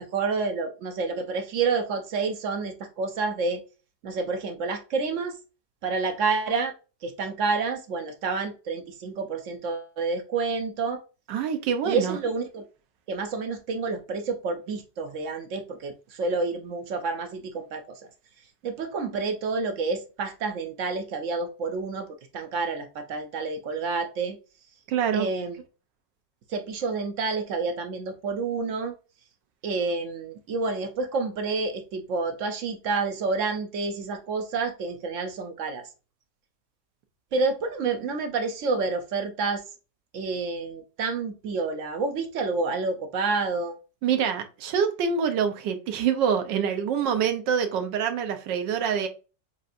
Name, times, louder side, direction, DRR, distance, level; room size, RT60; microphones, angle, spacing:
voice 1, 0.0-3.6 4.0-5.4 5.8-6.7 7.0-11.0 11.8-12.6 13.1-18.0 18.6-22.1 22.3-24.4 25.1-25.6 26.5-28.9 29.6-35.9 37.3-39.6 40.1-43.7, right 4 dB, 70° right, 0.7 m, -29 dB
voice 2, 11.3-12.2 24.9-25.3 44.0-49.1, right 7 dB, 85° right, 1.4 m, -25 dB
6.6 x 2.5 x 2.5 m
omnidirectional pair, 1.9 m